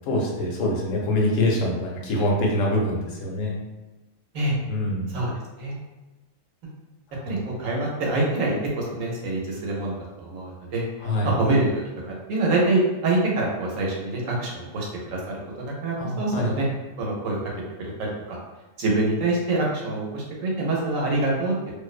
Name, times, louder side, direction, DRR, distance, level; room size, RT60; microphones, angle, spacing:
voice 1, 0.1-3.6 4.7-5.1 7.3-7.5 11.0-11.4 16.0-16.5, left 1 dB, 75° left, -2 dB, 1.0 m, -25 dB
voice 2, 7.3-10.8 11.2-11.7 12.1-15.2 15.6-16.7 17.0-17.5 17.8-18.4 18.8-21.5, right 2 dB, 80° right, -2 dB, 1.0 m, -25 dB
2.5 x 2.0 x 2.4 m, 1.1 s
omnidirectional pair, 1.4 m